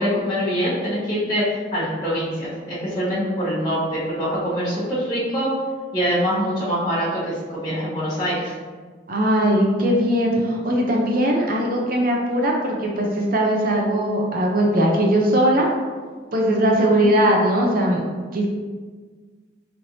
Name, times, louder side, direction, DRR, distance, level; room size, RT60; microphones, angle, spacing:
voice 1, 0.0-5.5 5.9-8.5 16.7-17.1, equal, 20° left, -12 dB, 1.1 m, -24 dB
voice 2, 9.1-15.7 16.3-18.0 18.3-18.5, right 1 dB, 45° right, -1 dB, 0.6 m, -19 dB
4.4 x 3.3 x 2.6 m, 1.5 s
head